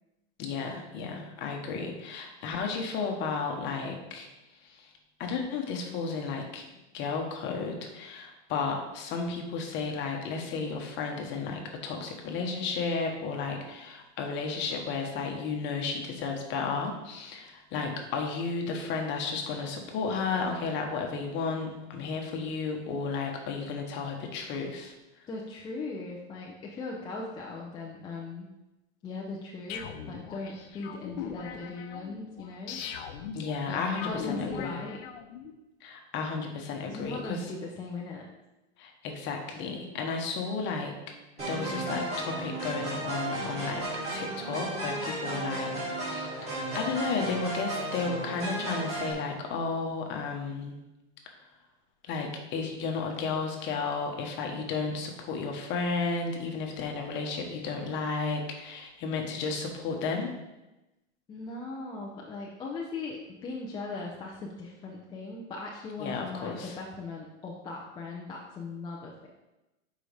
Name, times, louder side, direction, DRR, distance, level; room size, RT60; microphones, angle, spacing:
voice 1, 0.4-4.3 4.6-4.9 5.2-6.6 6.9-24.9 33.3-34.8 35.8-37.5 38.8-40.9 41.5-43.9 44.1-50.8 52.1-60.3 66.0-66.8, left 4 dB, 30° left, 2 dB, 1.1 m, -33 dB
voice 2, 25.3-28.5 29.0-32.8 33.7-35.0 36.9-38.3 61.3-69.3, left 3 dB, 15° left, -3 dB, 0.5 m, -39 dB
sound 1, 29.7-35.5, left 7 dB, 60° left, 0.9 m, -40 dB
sound 2, 41.4-49.1, right 2 dB, 20° right, 2.4 m, -34 dB
7.6 x 5.0 x 3.4 m, 1.0 s
supercardioid pair, 150°, 35 cm